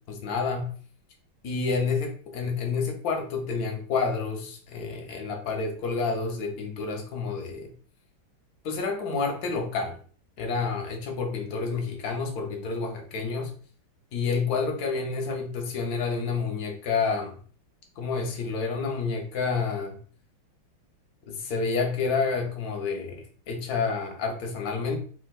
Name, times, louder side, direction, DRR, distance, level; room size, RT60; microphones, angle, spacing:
voice 1, 0.1-0.7 1.4-7.7 8.6-10.0 10.4-13.5 14.1-17.3 18.0-20.0 21.2-25.0, left 4 dB, 75° left, 0.9 m, -29 dB
3.6 x 2.2 x 2.3 m
omnidirectional pair, 2.2 m